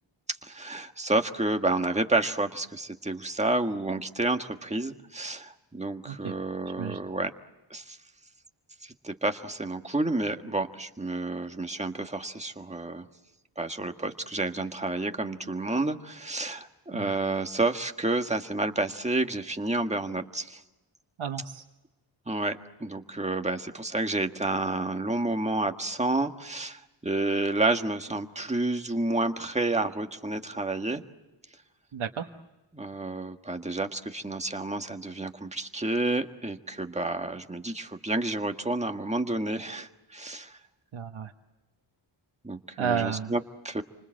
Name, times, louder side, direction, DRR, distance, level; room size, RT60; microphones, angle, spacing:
voice 1, 0.4-7.3 7.7-8.0 8.8-13.1 13.6-20.6 22.3-31.0 32.7-40.6 42.4-43.8, right 2 dB, 15° right, 5 dB, 1.6 m, -30 dB
voice 2, 21.2-21.6 31.9-32.3 40.9-41.3 42.8-43.3, right 7 dB, 80° right, 2 dB, 1.4 m, -32 dB
29.0 x 25.5 x 7.6 m, 1.1 s
wide cardioid pair, 120°, 48 cm